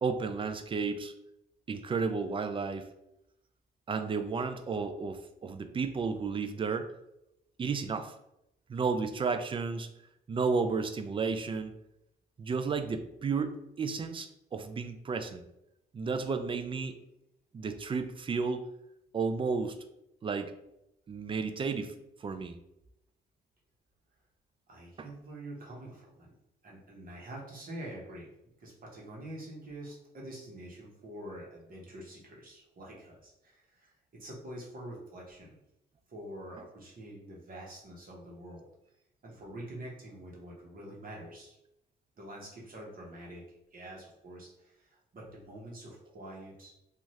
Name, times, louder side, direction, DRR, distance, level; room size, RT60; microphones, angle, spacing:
voice 1, 0.0-1.1 1.7-2.9 3.9-6.9 7.6-8.1 8.7-9.9 10.3-11.7 12.4-15.4 15.9-17.0 17.5-18.7 19.1-19.8 20.2-20.5 21.1-22.5 25.0-25.1, right 5 dB, 25° right, 9 dB, 0.3 m, -32 dB
voice 2, 24.7-26.3 26.6-28.3 28.6-35.6 36.1-38.7 39.2-41.6 42.2-43.4 43.7-46.7, right 1 dB, 45° right, -3 dB, 1.1 m, -46 dB
2.6 x 2.4 x 3.1 m, 0.84 s
cardioid pair, 90°, 20 cm